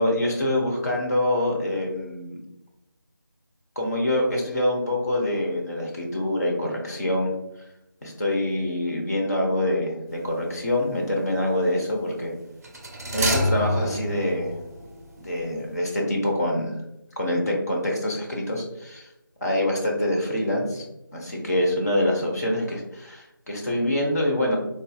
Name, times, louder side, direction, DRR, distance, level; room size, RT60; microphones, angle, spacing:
voice 1, 0.0-2.4 3.8-7.3 8.0-12.3 13.1-14.6 15.2-16.7 17.2-19.1 19.4-20.8 21.1-24.6, left 1 dB, 45° left, -1 dB, 0.9 m, -25 dB
sound 1, 10.2-10.5 12.6-15.4 15.7-15.8, equal, 45° right, 0.5 m, -28 dB
3.8 x 2.6 x 2.3 m, 0.88 s
figure-of-eight pair, 160°, 11 cm